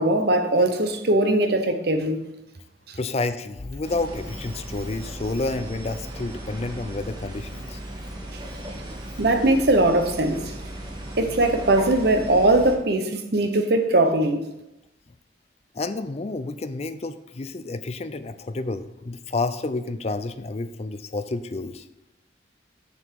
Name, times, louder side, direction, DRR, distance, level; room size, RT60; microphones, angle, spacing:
voice 1, 0.0-2.2 2.9-3.0 9.2-10.5 11.2-14.4, right 2 dB, 55° right, 6 dB, 0.9 m, -20 dB
voice 2, 3.0-7.8 15.7-21.8, left 3 dB, 35° left, 11 dB, 0.4 m, -30 dB
sound 1, 3.8-12.8, right 1 dB, 25° right, 1.2 m, -36 dB
7.1 x 6.8 x 4.6 m, 0.93 s
head